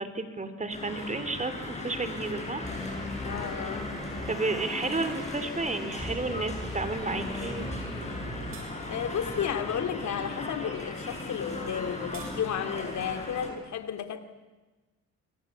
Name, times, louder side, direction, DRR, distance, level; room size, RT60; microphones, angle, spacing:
voice 1, 0.0-2.6 4.3-7.7, right 3 dB, 25° right, 10 dB, 3.3 m, -32 dB
sound 1, 0.7-13.5, left 2 dB, 20° left, 7.9 m, -37 dB
sound 2, 2.6-8.6, left 1 dB, ahead, 5.8 m, -40 dB
voice 2, 3.2-3.9 8.9-14.2, left 8 dB, 65° left, 9 dB, 2.5 m, -33 dB
sound 3, 8.0-8.2 8.5-8.7 11.7-12.3, right 7 dB, 85° right, 7.3 m, -47 dB
25.5 x 25.0 x 8.3 m, 1.2 s
cardioid pair, 90°, 30 cm